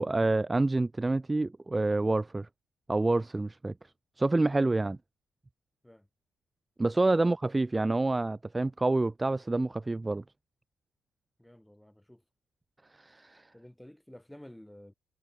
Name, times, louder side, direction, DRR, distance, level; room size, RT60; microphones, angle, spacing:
voice 1, 0.0-2.5 2.9-3.7 4.2-5.0 6.8-10.2 12.9-13.5, right 2 dB, 15° right, 0.3 m, -27 dB
voice 2, 11.4-12.2 13.5-14.9, left 1 dB, 5° left, 7.1 m, -52 dB
cardioid pair, 90°, 0 cm